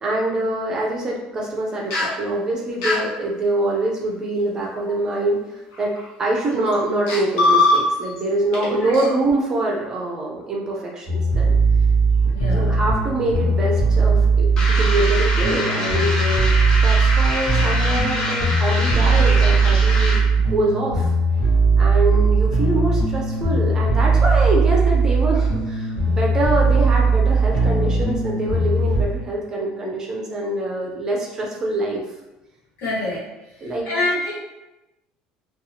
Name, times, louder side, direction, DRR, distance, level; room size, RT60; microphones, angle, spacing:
voice 1, 0.0-5.4 5.8-11.5 12.4-21.1 21.8-32.0 33.6-33.9, right 2 dB, 20° right, -2 dB, 0.5 m, -24 dB
sound 1, 1.9-2.2 2.8-3.0 4.8-4.9 5.7-6.1 6.7-6.8 7.1-8.2 8.5-8.7 8.9-9.1, left 2 dB, 90° left, 0.9 m, -19 dB
sound 2, 11.1-29.0, right 3 dB, 50° left, 1.1 m, -18 dB
voice 2, 12.3-12.7 32.8-33.2 33.9-34.3, left 2 dB, 75° left, -6 dB, 1.3 m, -25 dB
sound 3, 14.6-20.4, left 1 dB, 25° left, 0.5 m, -26 dB
2.8 x 2.3 x 2.7 m, 0.99 s
cardioid pair, 165°, 3 cm